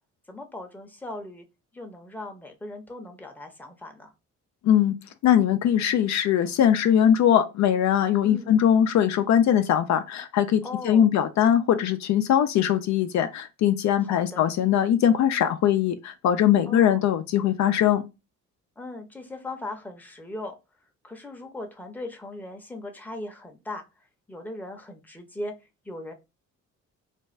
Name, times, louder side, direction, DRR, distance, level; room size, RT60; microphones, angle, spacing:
voice 1, 0.3-1.4 1.7-4.1 8.2-8.5 10.6-11.1 14.0-14.5 16.7-17.0 18.8-20.5 21.0-23.8 24.3-25.5 25.9-26.1, left 2 dB, 5° left, 0.7 m, -38 dB
voice 2, 5.2-18.0, left 10 dB, 65° left, 0.4 m, -21 dB
2.5 x 2.2 x 3.1 m
cardioid pair, 90°, 30 cm